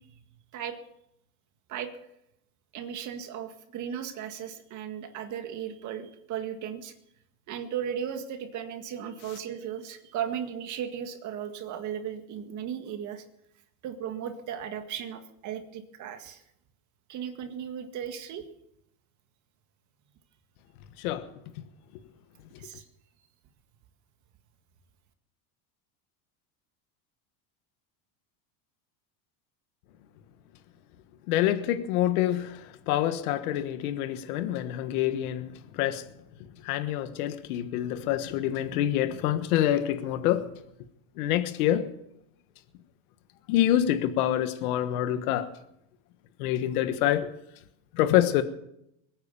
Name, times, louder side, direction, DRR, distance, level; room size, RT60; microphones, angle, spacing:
voice 1, 2.7-6.9 7.5-13.2 13.8-16.4 17.1-18.5 22.6-22.8, right 9 dB, 40° right, 6 dB, 1.9 m, -36 dB
voice 2, 31.3-35.5 35.7-36.0 36.6-40.5 41.2-41.8 43.5-45.5 46.4-47.3 48.0-48.4, left 12 dB, 80° left, 10 dB, 1.4 m, -26 dB
21.5 x 9.6 x 7.0 m, 0.79 s
supercardioid pair, 150°, 43 cm